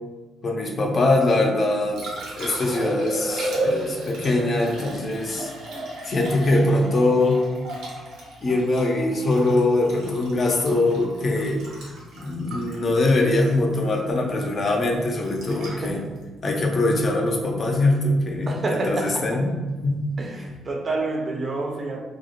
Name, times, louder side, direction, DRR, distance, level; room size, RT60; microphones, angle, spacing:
voice 1, 0.4-2.0 2.4-5.5 6.0-7.4 8.4-11.6 12.1-16.0 16.4-19.5 19.8-19.9, left 2 dB, 50° left, 1 dB, 0.5 m, -22 dB
Liquid, 1.5-17.6 20.5-20.6, right 1 dB, 80° right, 0.7 m, -34 dB
voice 2, 15.7-16.1 18.5-19.8 20.2-22.0, right 2 dB, 40° right, 1 dB, 0.5 m, -29 dB
2.2 x 2.0 x 3.0 m, 1.3 s
supercardioid pair, 55°, 0 cm